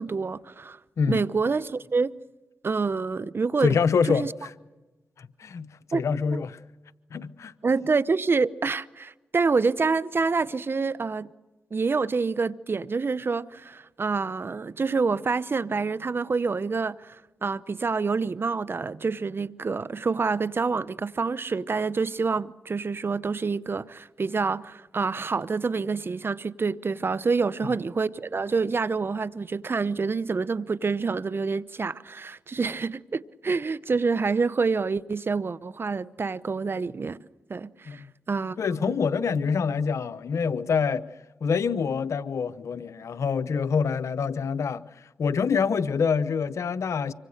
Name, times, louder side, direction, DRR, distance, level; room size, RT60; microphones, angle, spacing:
voice 1, 0.0-0.8 1.1-2.1 2.6-3.8 4.1-4.3 5.9-6.1 6.3-6.4 7.6-11.3 11.7-37.2 37.5-39.0, right 4 dB, 50° right, 0.8 m, -27 dB
voice 2, 3.6-4.5 5.2-6.6 7.1-7.5 27.6-27.8 37.9-38.1 38.6-41.1 41.4-44.8 45.2-47.1, left 6 dB, 75° left, 0.9 m, -26 dB
25.5 x 25.0 x 6.6 m
cardioid pair, 50°, 5 cm